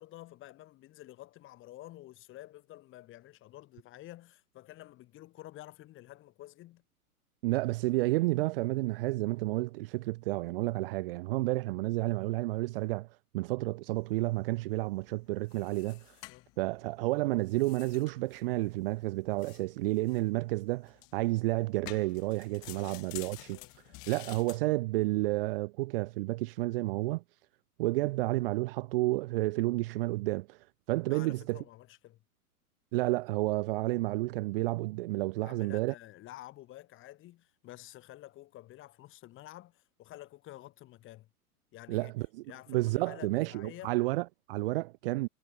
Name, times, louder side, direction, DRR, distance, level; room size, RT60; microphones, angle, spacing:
voice 1, 0.0-6.8 16.3-16.5 22.7-23.0 23.5-23.7 31.1-32.2 35.4-41.3 41.7-42.1 42.5-44.0, left 15 dB, 25° left, 2.9 m, -50 dB
voice 2, 7.4-13.1 13.3-16.0 16.6-23.6 24.1-27.2 27.8-30.6 30.9-31.6 32.9-35.9 41.9-42.4 42.7-45.3, right 20 dB, 35° right, 1.1 m, -31 dB
sound 1, 14.0-24.6, left 26 dB, 10° left, 0.4 m, -52 dB
figure-of-eight pair, 110°, 46 cm